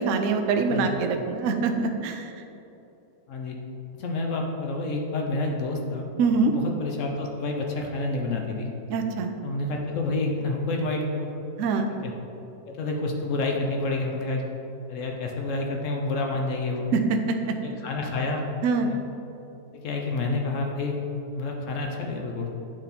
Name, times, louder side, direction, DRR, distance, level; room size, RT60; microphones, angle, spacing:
voice 1, 0.0-2.3 6.2-6.5 8.9-9.3 11.6-11.9 16.9-17.6 18.6-18.9, right 4 dB, 80° right, 5 dB, 0.7 m, -24 dB
voice 2, 4.0-6.1 6.4-8.7 9.4-11.3 11.9-12.1 12.7-14.4 14.9-16.9 17.6-18.4 18.8-19.0 19.7-21.0 21.3-22.5, left 2 dB, 65° left, 1 dB, 0.7 m, -29 dB
8.8 x 4.0 x 4.1 m, 2.9 s
omnidirectional pair, 2.0 m